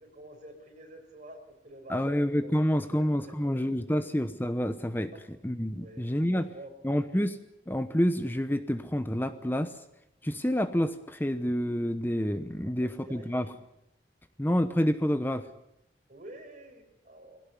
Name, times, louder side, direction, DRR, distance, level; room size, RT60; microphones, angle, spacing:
voice 1, 0.0-2.5 2.9-3.6 3.9-4.0 5.1-5.2 5.7-6.7 12.8-13.6 16.1-17.4, right 1 dB, 45° right, 4 dB, 5.2 m, -49 dB
voice 2, 1.9-5.1 5.4-6.5 6.8-7.4 7.7-9.8 10.2-13.5 14.4-15.5, equal, 10° left, 10 dB, 0.9 m, -28 dB
21.0 x 17.5 x 9.7 m, 0.84 s
head